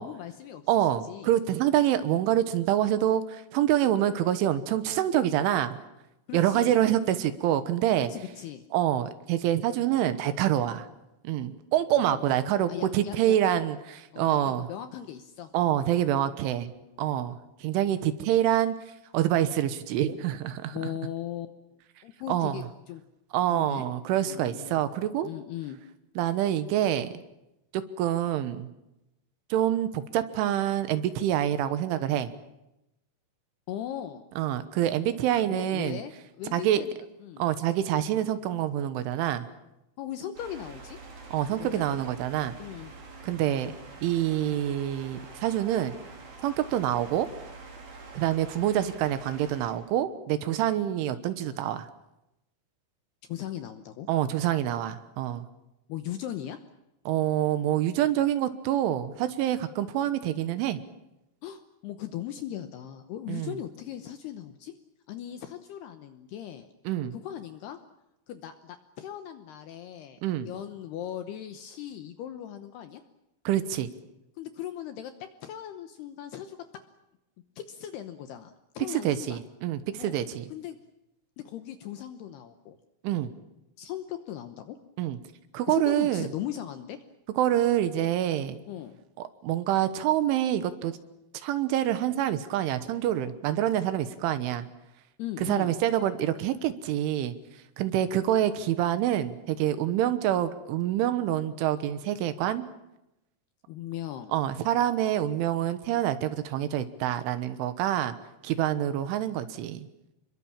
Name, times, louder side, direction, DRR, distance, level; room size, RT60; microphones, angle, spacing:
voice 1, 0.0-1.3 6.3-6.8 8.1-8.6 12.0-12.2 12.7-13.6 14.1-15.5 16.7-17.3 20.7-21.5 22.0-23.0 23.5-23.9 24.2-24.8 25.2-25.8 33.7-34.3 35.4-36.9 37.2-37.4 40.0-41.0 41.6-41.8 42.6-42.9 53.3-54.1 55.9-56.6 61.4-64.7 65.1-66.7 67.1-67.8 68.3-73.0 74.4-75.1 75.4-76.6 77.6-79.4 80.0-80.2 80.5-80.8 81.4-82.8 83.8-84.8 85.7-87.0 88.7-89.0 95.2-95.7 103.7-104.3, left 11 dB, 75° left, 9 dB, 2.5 m, -38 dB
voice 2, 0.7-5.8 6.3-8.1 8.7-10.9 11.3-14.7 15.5-16.7 17.0-18.8 19.1-20.9 22.3-22.7 23.3-25.3 26.2-27.1 27.7-28.7 29.5-32.3 34.4-36.0 36.5-36.8 37.4-39.5 41.3-42.5 43.2-43.8 44.0-46.0 46.4-47.3 48.1-51.9 54.1-55.5 57.1-60.8 63.3-63.6 66.9-67.1 70.2-70.5 73.5-73.9 78.9-80.5 83.0-83.3 85.0-85.2 85.5-86.3 87.4-88.6 89.4-91.0 91.3-94.7 95.4-97.4 97.8-102.7 104.3-108.2 108.4-109.9, right 11 dB, 75° right, 12 dB, 3.5 m, -26 dB
sound 1, 40.4-49.7, right 3 dB, 50° right, 6.0 m, -46 dB
27.5 x 22.5 x 7.4 m, 0.90 s
omnidirectional pair, 5.8 m